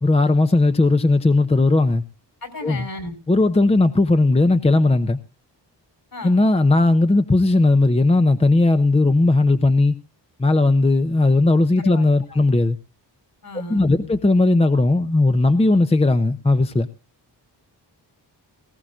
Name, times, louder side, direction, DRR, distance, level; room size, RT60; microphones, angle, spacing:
voice 1, 0.0-2.0 2.6-2.9 3.3-5.2 6.2-10.0 10.4-12.8 13.7-16.9, left 2 dB, 15° left, 0.8 m, -17 dB
voice 2, 2.4-3.2 6.1-6.4 11.8-12.4 13.4-14.1, left 2 dB, 55° left, 4.4 m, -34 dB
19.5 x 17.0 x 2.4 m
cardioid pair, 90°, 42 cm